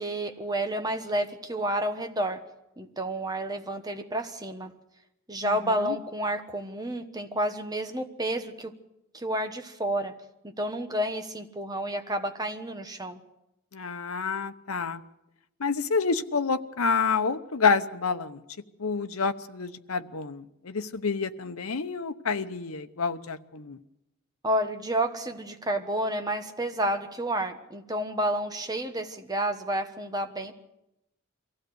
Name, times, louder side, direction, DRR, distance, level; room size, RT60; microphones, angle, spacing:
voice 1, 0.0-2.4 2.8-4.7 5.3-8.7 9.1-10.1 10.4-13.2 24.4-30.5, right 1 dB, 20° right, 6 dB, 1.2 m, -30 dB
voice 2, 5.4-6.0 13.7-15.0 15.6-18.4 18.8-23.8, left 5 dB, 85° left, 10 dB, 0.9 m, -28 dB
23.5 x 15.5 x 7.9 m, 0.88 s
head